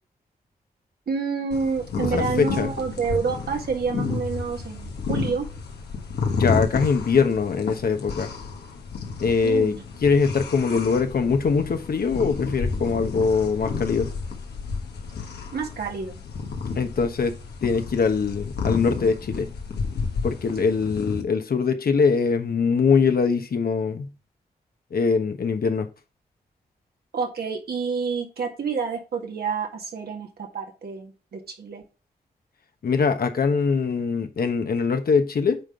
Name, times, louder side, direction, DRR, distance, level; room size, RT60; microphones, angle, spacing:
voice 1, 1.1-5.5 9.4-9.8 15.5-16.2 27.1-31.8, right 5 dB, 70° right, 1.9 m, -28 dB
sound 1, 1.5-21.2, left 4 dB, 80° left, 1.5 m, -31 dB
voice 2, 2.1-2.7 6.3-8.3 9.2-9.8 10.0-14.1 16.8-17.3 17.6-19.5 20.2-24.1 24.9-25.9 32.8-35.6, left 5 dB, 65° left, 1.2 m, -22 dB
8.9 x 3.8 x 4.5 m
supercardioid pair, 45°, 17 cm